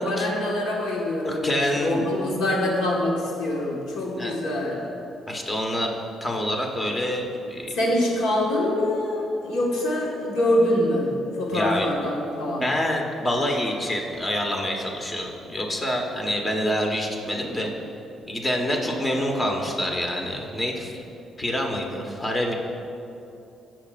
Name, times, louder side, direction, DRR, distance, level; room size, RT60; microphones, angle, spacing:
voice 1, 0.0-4.8 7.7-11.1 11.3-12.7, left 1 dB, 85° left, -2 dB, 1.5 m, -25 dB
voice 2, 1.2-2.0 4.2-4.3 5.3-5.9 6.2-7.7 11.5-11.9 12.6-17.7 18.3-21.0 21.4-22.5, left 1 dB, 25° left, 1 dB, 1.4 m, -26 dB
17.0 x 7.5 x 2.5 m, 2.8 s
cardioid pair, 90°, 0 cm